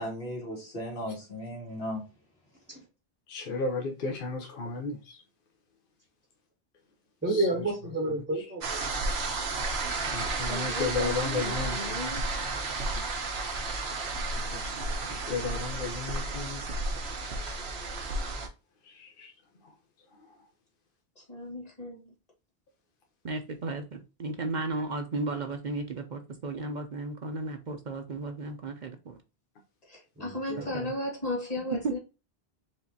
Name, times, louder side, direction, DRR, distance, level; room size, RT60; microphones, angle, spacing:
voice 1, 0.0-2.0, equal, 80° left, 2.2 m, -36 dB
voice 2, 3.3-5.2 7.3-7.4 10.1-12.0 14.5-14.7 15.3-16.6 18.9-19.3, left 4 dB, 60° left, 0.9 m, -33 dB
voice 3, 7.2-8.8 30.2-30.7, right 2 dB, 10° right, 0.7 m, -30 dB
sound 1, 8.6-18.5, right 3 dB, 85° right, 1.2 m, -32 dB
voice 4, 9.9-12.3 21.1-22.1 29.8-32.0, left 1 dB, 40° left, 1.8 m, -36 dB
voice 5, 23.2-29.2 30.6-30.9 31.8-32.0, right 3 dB, 50° right, 0.7 m, -34 dB
4.7 x 3.2 x 2.7 m
omnidirectional pair, 1.0 m